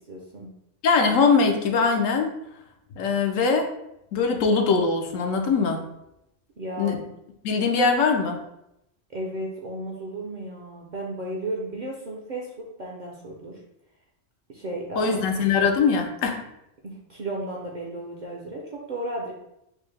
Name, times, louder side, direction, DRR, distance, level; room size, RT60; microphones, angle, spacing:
voice 1, 0.1-0.5 6.6-7.0 9.1-13.6 14.5-15.3 16.8-19.3, right 1 dB, 55° right, -2 dB, 0.5 m, -34 dB
voice 2, 0.8-2.3 3.0-3.7 4.1-5.8 6.8-7.0 7.4-8.4 15.0-16.4, left 4 dB, 85° left, 3 dB, 1.0 m, -22 dB
4.5 x 2.0 x 3.2 m, 0.82 s
omnidirectional pair, 1.3 m